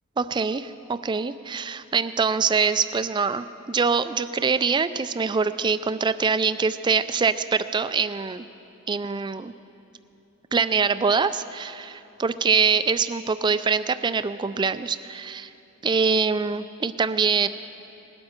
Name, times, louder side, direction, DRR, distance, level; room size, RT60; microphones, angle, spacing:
voice 1, 0.2-8.5 8.9-9.5 10.5-15.5 15.8-17.5, right 5 dB, 20° right, 13 dB, 0.3 m, -24 dB
20.0 x 12.5 x 4.4 m, 2.9 s
head